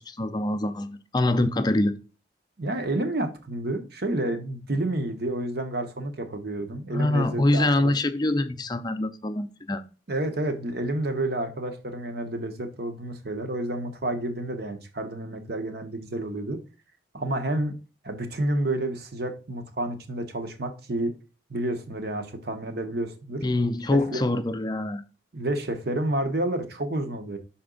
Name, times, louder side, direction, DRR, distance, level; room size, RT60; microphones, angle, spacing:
voice 1, 0.0-2.0 6.9-9.8 23.4-25.0, left 2 dB, 25° left, 0.4 m, -25 dB
voice 2, 2.6-7.9 10.1-16.6 17.1-17.7 18.0-21.1 21.5-23.4 23.9-24.2 25.3-27.4, right 1 dB, 60° right, 1.0 m, -30 dB
5.9 x 4.3 x 3.8 m
head